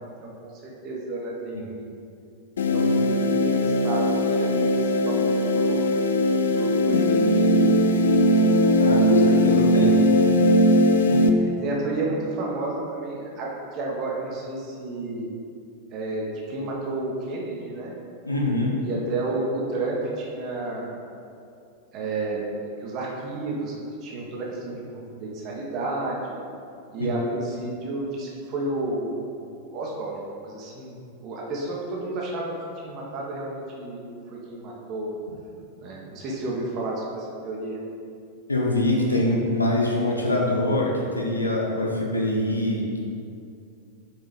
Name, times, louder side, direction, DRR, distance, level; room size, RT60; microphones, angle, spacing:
voice 1, 0.0-1.8 2.6-5.9 6.6-8.1 11.2-15.3 15.9-17.9 18.8-20.9 21.9-22.5 22.8-23.7 24.0-26.4 26.9-32.5 32.8-35.1 35.8-37.8, right 2 dB, 35° right, -3 dB, 1.3 m, -31 dB
sound 1, 2.6-11.3, left 1 dB, 65° left, 0.4 m, -19 dB
voice 2, 8.8-9.9 11.1-11.2 18.3-18.7 27.0-27.1 38.5-43.0, left 1 dB, 80° left, -2 dB, 1.0 m, -24 dB
5.9 x 4.7 x 5.1 m, 2.5 s
figure-of-eight pair, 90°, 0 cm